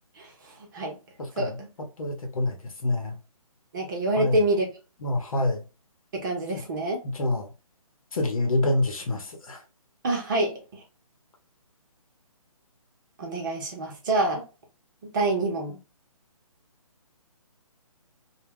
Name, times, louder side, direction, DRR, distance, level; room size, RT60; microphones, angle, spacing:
voice 1, 0.2-1.0 1.4-1.7 3.7-4.7 6.1-7.0 10.0-10.8 13.2-14.5 15.1-15.8, right 2 dB, 35° right, 0.8 m, -27 dB
voice 2, 2.0-3.2 4.2-4.4 5.0-5.6 6.5-6.6 7.0-7.5 8.1-9.6, left 2 dB, 70° left, 0.9 m, -27 dB
2.3 x 2.1 x 3.5 m
figure-of-eight pair, 145°, 19 cm